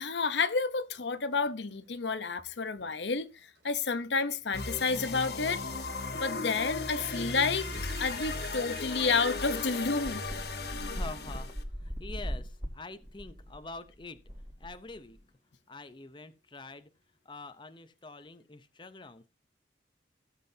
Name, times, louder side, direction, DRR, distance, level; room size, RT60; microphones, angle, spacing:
voice 1, 0.0-3.3 3.6-5.6 6.2-7.7 8.0-10.2, left 4 dB, 80° left, 0.9 m, -30 dB
sound 1, 1.1-12.4 18.0-18.1, right 5 dB, 70° right, 2.1 m, -52 dB
sound 2, 4.5-11.6, left 3 dB, 65° left, 1.5 m, -36 dB
sound 3, 10.0-15.2, equal, 20° right, 3.2 m, -39 dB
voice 2, 10.9-11.5 11.8-14.2 14.6-15.2 15.7-16.9 17.2-19.3, left 3 dB, 25° left, 0.7 m, -45 dB
16.5 x 7.5 x 2.8 m
head